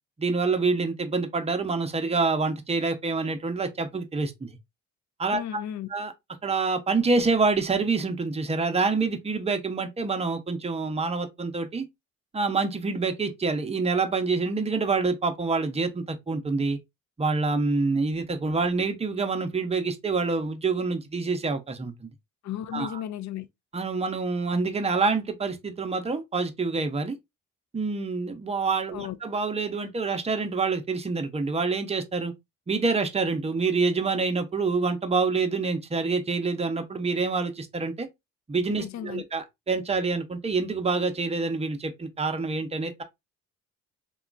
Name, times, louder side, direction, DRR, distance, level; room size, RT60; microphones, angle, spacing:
voice 1, 0.2-4.6 5.2-5.6 5.9-6.1 6.4-11.9 12.3-16.8 17.2-22.1 22.7-23.0 23.7-27.2 27.7-32.3 32.7-38.1 38.5-43.0, right 4 dB, 20° right, 0.6 m, -27 dB
voice 2, 5.3-5.9 22.4-23.5 28.9-29.2 38.8-39.2, left 11 dB, 55° left, 0.5 m, -34 dB
2.9 x 2.3 x 2.4 m
supercardioid pair, 60°, 34 cm